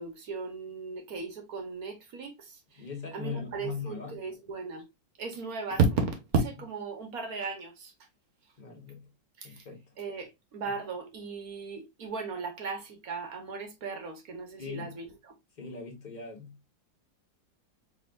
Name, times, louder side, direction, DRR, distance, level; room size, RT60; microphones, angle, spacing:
voice 1, 0.0-2.8 3.1-4.9 5.2-7.9 9.4-9.6 10.0-15.1, right 4 dB, 55° right, 1.3 m, -34 dB
voice 2, 2.8-4.2 8.6-9.1 9.4-9.9 10.6-10.7 14.6-15.0 15.6-16.7, left 5 dB, 25° left, 1.3 m, -40 dB
4.7 x 3.5 x 2.4 m
omnidirectional pair, 2.1 m